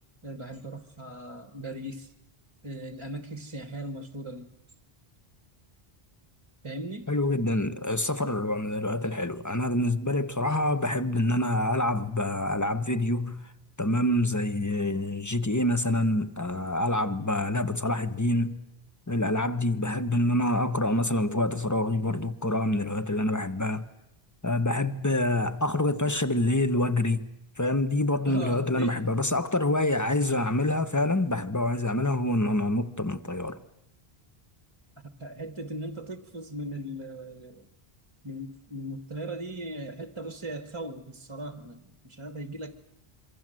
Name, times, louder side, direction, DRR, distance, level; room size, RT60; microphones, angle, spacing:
voice 1, 0.2-2.1 2.6-4.5 6.6-7.1 10.4-10.6 28.3-29.0 35.0-37.7 38.2-42.8, right 1 dB, 30° right, 1.3 m, -38 dB
voice 2, 7.1-13.5 13.8-18.6 19.1-23.9 24.4-27.3 27.6-33.6, left 1 dB, 15° left, 1.1 m, -26 dB
26.5 x 24.5 x 7.7 m
omnidirectional pair, 1.1 m